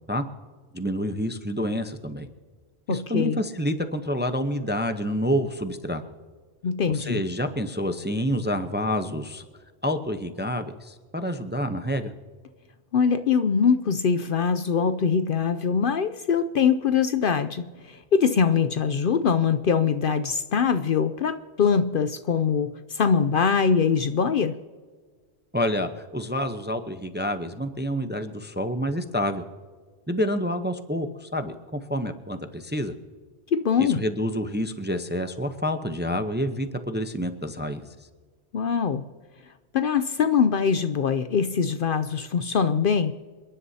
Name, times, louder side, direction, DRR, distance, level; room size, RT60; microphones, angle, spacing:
voice 1, 0.7-2.3 2.9-6.0 6.9-9.4 9.8-12.1 25.5-29.4 30.1-32.9 33.8-37.9, equal, 10° right, 8 dB, 0.6 m, -28 dB
voice 2, 2.9-3.4 6.6-7.2 12.9-24.6 33.5-34.0 38.5-39.0 39.7-43.1, left 6 dB, 60° left, 11 dB, 0.7 m, -23 dB
28.0 x 11.0 x 2.8 m, 1.5 s
omnidirectional pair, 1.2 m